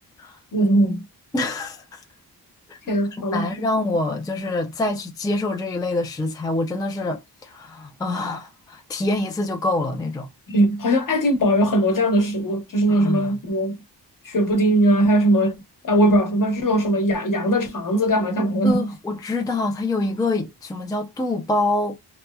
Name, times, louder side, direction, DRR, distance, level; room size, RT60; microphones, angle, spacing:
voice 1, 0.5-1.0 2.9-3.7 10.5-13.8 14.2-15.6 15.8-18.9, right 1 dB, 55° left, 1.0 m, -20 dB
voice 2, 1.3-2.0 2.7-2.8 3.3-10.3 12.9-13.4 18.6-22.0, left 2 dB, 10° left, 0.4 m, -25 dB
2.9 x 2.1 x 2.2 m
wide cardioid pair, 125°, 39 cm